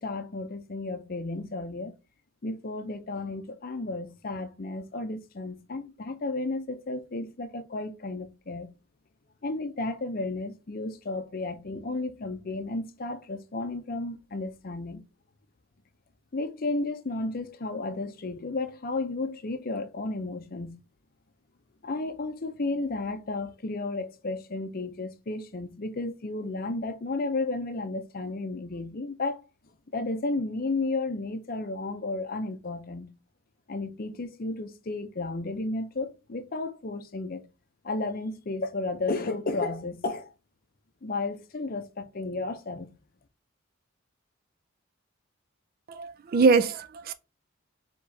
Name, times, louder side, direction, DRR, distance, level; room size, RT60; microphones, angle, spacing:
voice 1, 0.0-1.9 2.4-8.7 9.4-15.0 16.3-20.8 21.8-29.4 29.9-33.1 33.7-37.5 37.8-40.3 41.0-42.9, left 2 dB, 45° left, 0.6 m, -33 dB
voice 2, 45.9-47.1, right 4 dB, 45° right, 0.4 m, -23 dB
4.8 x 3.6 x 2.7 m
head